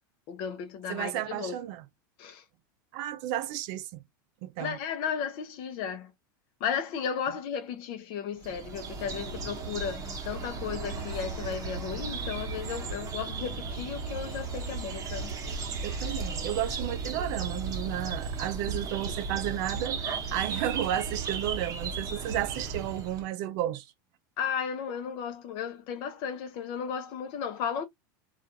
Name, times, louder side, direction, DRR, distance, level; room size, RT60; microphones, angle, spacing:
voice 1, 0.3-1.6 2.2-2.4 4.6-6.1 6.6-15.3 15.9-16.0 24.4-27.9, left 7 dB, 55° left, 0.6 m, -34 dB
voice 2, 0.9-1.8 2.9-4.0 4.4-4.8 15.8-23.9, right 12 dB, 55° right, 0.4 m, -32 dB
sound 1, 8.4-23.3, right 4 dB, 30° right, 0.9 m, -35 dB
2.4 x 2.3 x 2.6 m
supercardioid pair, 125°, 11 cm